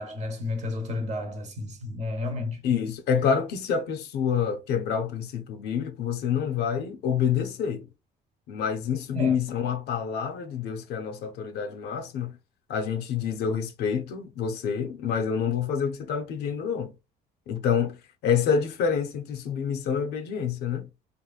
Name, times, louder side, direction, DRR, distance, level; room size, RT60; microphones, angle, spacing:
voice 1, 0.0-2.6 9.1-9.4, left 2 dB, 40° right, 1.0 m, -32 dB
voice 2, 2.6-7.9 8.5-12.4 12.7-16.9 17.5-20.9, left 7 dB, 75° left, 0.6 m, -27 dB
2.9 x 2.5 x 2.3 m
cardioid pair, 110°, 17 cm